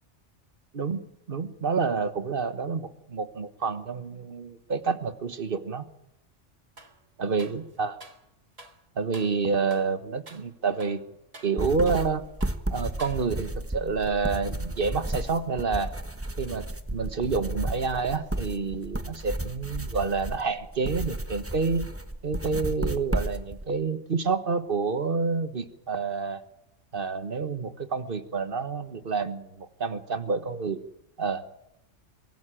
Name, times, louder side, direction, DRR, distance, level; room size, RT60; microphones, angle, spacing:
voice 1, 0.7-5.8 7.2-7.9 9.0-11.0 11.4-12.2 12.7-15.9 16.4-21.9 22.2-26.4 26.9-30.8 31.2-31.4, right 4 dB, 50° right, 11 dB, 1.5 m, -28 dB
sound 1, 6.8-7.0 7.4-8.3 8.6-8.8 9.1-9.4 9.7-10.0 10.3-10.5 10.8-12.1 12.4-12.6 13.0-13.6, right 2 dB, 30° right, 1.7 m, -49 dB
sound 2, 11.6-23.6, right 1 dB, 10° right, 1.1 m, -33 dB
23.5 x 16.0 x 9.0 m, 0.83 s
omnidirectional pair, 1.2 m